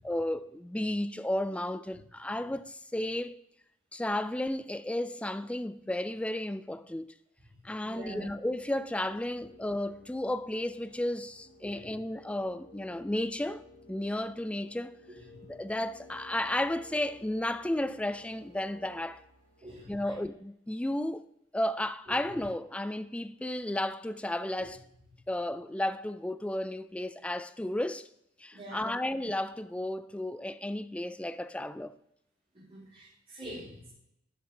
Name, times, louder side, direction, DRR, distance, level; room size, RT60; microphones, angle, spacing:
voice 1, 0.0-3.3 3.9-7.1 7.6-13.6 13.9-14.9 15.5-19.2 19.9-21.3 21.5-24.8 25.3-28.1 28.4-31.9, left 1 dB, 5° left, 0.3 m, -33 dB
voice 2, 7.8-8.3 11.6-11.9 15.1-15.5 19.6-20.2 22.1-22.2 24.6-24.7 28.5-28.9 32.5-33.9, right 1 dB, 30° right, 3.9 m, -46 dB
sound 1, 8.0-20.0, left 2 dB, 45° left, 1.6 m, -55 dB
12.0 x 6.7 x 3.3 m
head